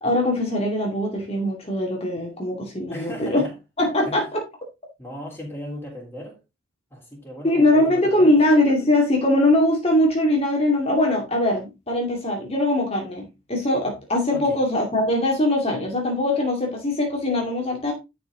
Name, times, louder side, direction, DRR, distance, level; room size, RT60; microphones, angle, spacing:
voice 1, 0.0-3.4 3.8-4.4 7.4-17.9, left 1 dB, 30° left, 2.5 m, -21 dB
voice 2, 2.9-3.5 4.0-4.3 5.0-6.4 6.9-8.4 14.3-14.6, equal, 15° left, 3.5 m, -37 dB
11.5 x 6.1 x 3.8 m
head